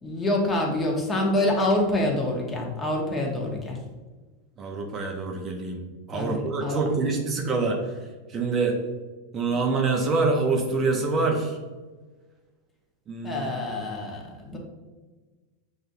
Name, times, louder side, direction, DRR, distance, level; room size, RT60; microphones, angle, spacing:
voice 1, 0.0-3.8 6.1-6.8 9.5-9.6 13.2-14.6, left 1 dB, 20° left, -1 dB, 1.0 m, -26 dB
voice 2, 4.6-5.8 6.1-8.0 8.3-8.8 9.3-11.6 13.1-13.5 14.5-14.6, right 3 dB, 30° right, 1 dB, 0.6 m, -26 dB
6.0 x 2.6 x 2.6 m, 1.3 s
hypercardioid pair, 100°, 0 cm